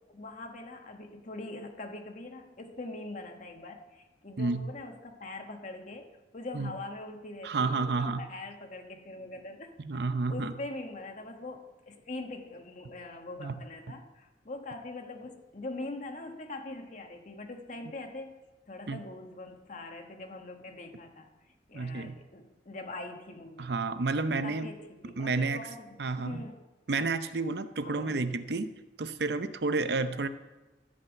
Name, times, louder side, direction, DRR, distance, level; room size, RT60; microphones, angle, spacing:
voice 1, 0.1-6.1 6.3-9.7 10.3-18.4 18.7-21.3 21.7-23.7 24.3-26.6 27.8-28.2 30.1-30.3, left 2 dB, 45° left, 4 dB, 1.3 m, -43 dB
voice 2, 4.4-4.7 6.5-6.7 7.4-8.2 9.8-10.6 13.4-13.6 18.9-19.0 21.7-22.2 23.6-24.7 25.2-25.7 26.0-26.4 26.9-28.7 29.0-30.3, right 3 dB, 65° right, 11 dB, 0.6 m, -30 dB
13.5 x 5.8 x 8.1 m, 1.1 s
head